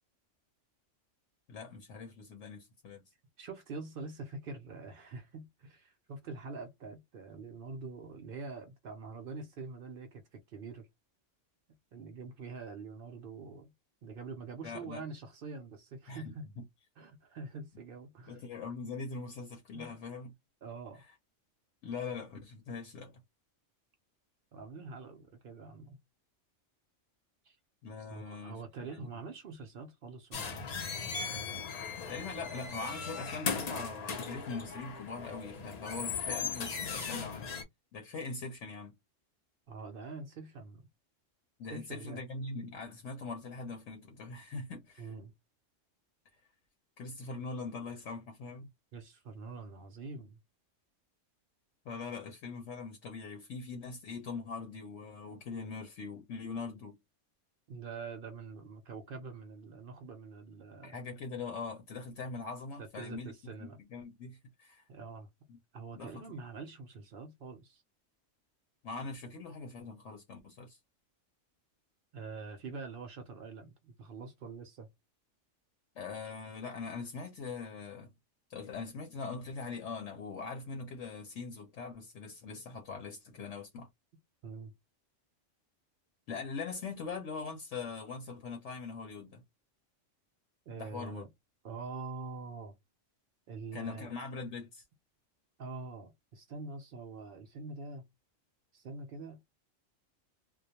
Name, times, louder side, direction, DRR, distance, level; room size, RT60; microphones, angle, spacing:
voice 1, 1.5-3.0 14.6-15.0 16.1-16.6 18.3-20.3 21.8-23.2 27.8-28.6 28.9-29.1 32.1-37.5 37.9-38.9 41.6-45.1 47.0-48.7 51.8-57.0 60.8-64.8 65.5-65.6 65.9-66.4 68.8-70.8 76.0-78.1 78.5-83.9 86.3-89.4 90.8-91.3 93.7-94.8, left 4 dB, 75° left, 1.0 m, -42 dB
voice 2, 3.4-10.9 11.9-13.7 14.0-16.5 17.0-18.4 19.7-20.0 20.6-21.0 24.5-26.0 27.4-27.6 28.1-30.7 39.7-40.9 41.7-42.2 45.0-45.3 48.9-50.4 57.7-61.0 62.8-63.8 64.9-65.3 65.7-67.8 72.1-74.9 84.4-84.7 90.7-91.3 91.6-92.7 93.5-94.1 95.6-98.0 98.7-99.4, right 4 dB, 60° right, 0.6 m, -45 dB
sound 1, 30.3-37.6, left 5 dB, 50° left, 0.5 m, -38 dB
2.3 x 2.1 x 2.8 m
omnidirectional pair, 1.3 m